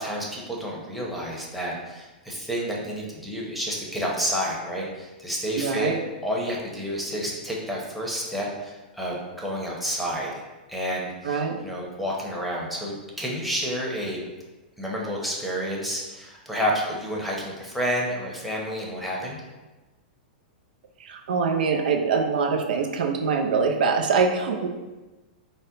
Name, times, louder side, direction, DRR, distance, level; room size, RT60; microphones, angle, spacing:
voice 1, 0.0-5.9 6.2-10.4 10.7-14.2 14.8-19.4, equal, ahead, -3 dB, 0.8 m, -30 dB
voice 2, 5.6-6.0 11.2-11.6 21.0-24.7, right 5 dB, 75° right, 3 dB, 0.5 m, -24 dB
4.1 x 2.2 x 3.8 m, 1.1 s
hypercardioid pair, 120°, 5 cm